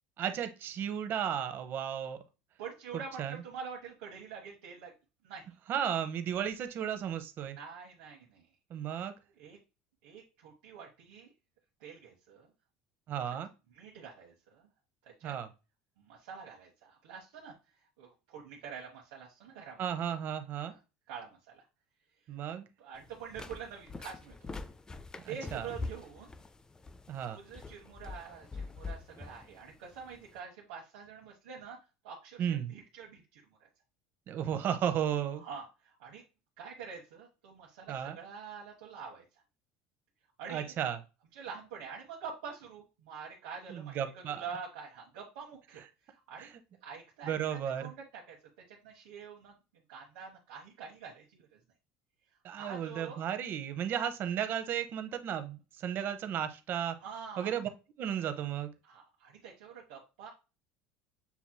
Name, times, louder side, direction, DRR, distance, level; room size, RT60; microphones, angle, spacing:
voice 1, 0.2-2.2 3.2-3.4 5.7-7.6 8.7-9.1 13.1-13.5 15.2-15.5 19.8-20.7 22.3-22.7 25.5-25.7 27.1-27.4 32.4-32.7 34.3-35.4 37.9-38.2 40.5-41.0 43.7-44.4 46.4-46.5 47.2-47.9 52.4-57.0 57.4-57.7 58.0-58.7, right 9 dB, 50° right, 9 dB, 0.7 m, -34 dB
voice 2, 2.6-4.9 5.2-5.5 7.6-8.5 9.4-9.6 10.0-11.3 11.8-12.5 13.7-14.7 15.0-15.4 16.0-17.5 18.0-19.9 20.7-20.8 21.1-21.7 22.8-24.3 25.3-26.4 27.3-31.8 32.0-33.7 35.4-36.2 36.6-39.2 40.4-40.7 41.3-46.5 46.8-48.4 48.7-49.5 49.9-51.6 52.5-53.2 57.0-57.5 58.8-60.3, right 6 dB, 90° right, -3 dB, 1.0 m, -46 dB
sound 1, 23.0-30.4, left 3 dB, 15° left, 0.4 m, -44 dB
6.9 x 3.0 x 2.2 m, 0.30 s
supercardioid pair, 115°, 5 cm